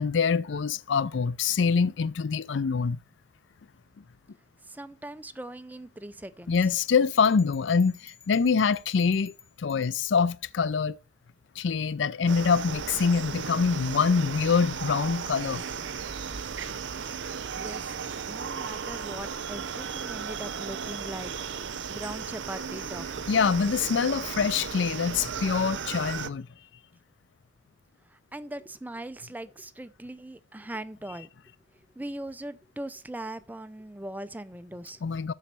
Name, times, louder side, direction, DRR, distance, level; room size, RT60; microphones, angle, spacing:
voice 1, 0.0-3.0 6.5-11.0 11.6-15.6 23.3-26.5 35.0-35.3, left 5 dB, 85° left, 0.5 m, -25 dB
voice 2, 4.6-6.5 17.2-18.0 18.2-23.1 28.1-31.3 32.0-35.0, right 1 dB, 10° right, 0.5 m, -40 dB
sound 1, 6.5-10.2, left 7 dB, 20° left, 0.9 m, -52 dB
sound 2, 12.3-26.3, right 6 dB, 90° right, 0.7 m, -35 dB
7.5 x 6.3 x 6.8 m
head